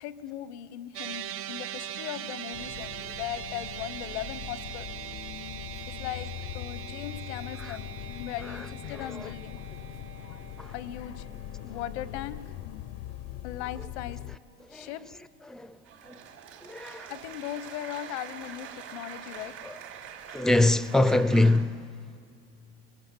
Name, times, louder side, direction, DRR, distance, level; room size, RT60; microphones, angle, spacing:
voice 1, 0.0-4.9 5.9-7.9 8.2-9.6 10.7-11.3 11.6-12.6 13.4-14.2 14.7-15.2 16.3-16.4 17.1-19.6, left 12 dB, 85° left, 1.1 m, -38 dB
sound 1, 0.9-13.4, right 10 dB, 45° right, 0.6 m, -42 dB
sound 2, 2.5-14.4, left 13 dB, 65° left, 0.7 m, -41 dB
voice 2, 8.5-9.3 10.6-10.7 14.7-14.9 15.5-15.8 16.1-16.2 16.6-17.1 19.6-19.8 20.3-22.0, left 2 dB, ahead, 0.6 m, -25 dB
sound 3, 15.8-21.6, right 8 dB, 70° right, 5.4 m, -44 dB
23.0 x 22.0 x 9.1 m
supercardioid pair, 110°, 32 cm